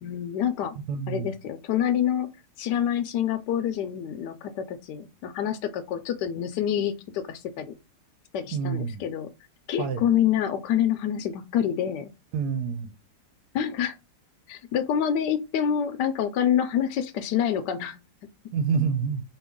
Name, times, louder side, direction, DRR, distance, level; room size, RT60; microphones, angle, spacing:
voice 1, 0.0-0.7 1.1-2.3 2.6-7.7 8.3-9.3 9.7-12.1 13.5-14.0 14.5-18.0, left 9 dB, 75° left, 1.2 m, -27 dB
voice 2, 0.9-1.3 8.5-9.0 9.8-10.0 12.3-12.9 18.5-19.2, right 6 dB, 70° right, 1.2 m, -27 dB
4.5 x 3.0 x 3.6 m
omnidirectional pair, 1.9 m